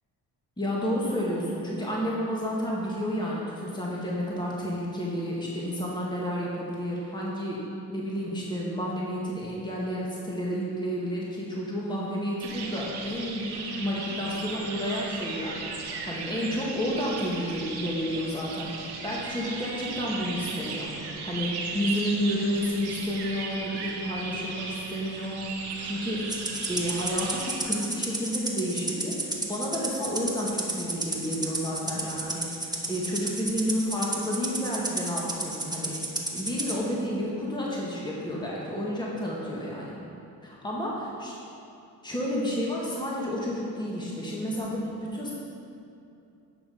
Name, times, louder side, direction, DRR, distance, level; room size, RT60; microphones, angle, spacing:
voice 1, 0.6-7.6 7.9-25.4 25.8-36.0 36.3-40.0 40.4-40.9 41.2-41.3 42.0-45.3, equal, 10° left, -5 dB, 1.8 m, -31 dB
sound 1, 12.4-27.6, right 4 dB, 80° right, 1.3 m, -36 dB
Rattle (instrument), 26.3-36.8, right 2 dB, 10° right, 1.3 m, -32 dB
9.7 x 6.1 x 5.1 m, 2.6 s
cardioid pair, 70°, 39 cm